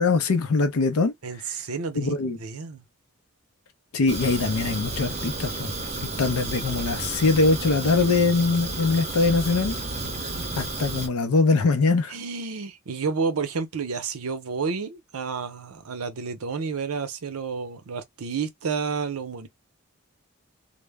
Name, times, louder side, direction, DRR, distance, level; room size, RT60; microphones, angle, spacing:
voice 1, 0.0-1.1 2.0-2.4 3.9-5.7 6.2-9.8 10.6-12.1, left 3 dB, 85° left, 0.5 m, -22 dB
voice 2, 1.2-2.8 12.1-19.5, right 5 dB, 85° right, 0.6 m, -30 dB
Fire, 4.1-11.1, right 2 dB, 30° right, 0.6 m, -32 dB
2.1 x 2.0 x 3.3 m
head